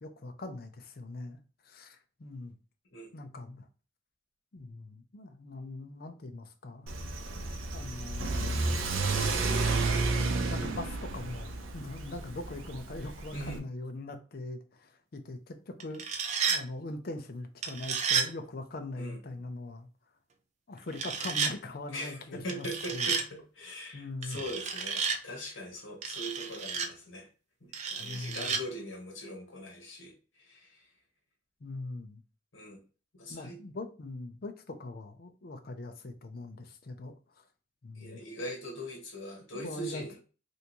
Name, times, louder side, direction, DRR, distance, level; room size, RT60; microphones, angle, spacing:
voice 1, 0.0-2.5 3.1-3.7 4.5-6.9 7.7-8.9 10.2-16.1 16.5-19.9 20.7-22.7 22.9-23.1 23.9-24.4 28.0-28.5 31.6-32.2 33.3-37.5 37.8-38.2 39.5-40.0, left 2 dB, 45° left, 0.5 m, -42 dB
Car / Accelerating revving vroom, 6.9-13.6, right 3 dB, 80° right, 0.6 m, -31 dB
voice 2, 13.3-13.6 18.9-19.2 21.9-27.3 27.6-30.8 32.5-32.8 33.1-33.6 37.9-40.1, equal, 70° left, 1.3 m, -41 dB
sound 1, 15.8-16.6 17.6-18.3 20.9-21.5 22.5-23.3 24.2-25.2 26.0-26.9 27.7-28.6, right 6 dB, 35° right, 0.4 m, -31 dB
3.4 x 2.7 x 2.8 m
head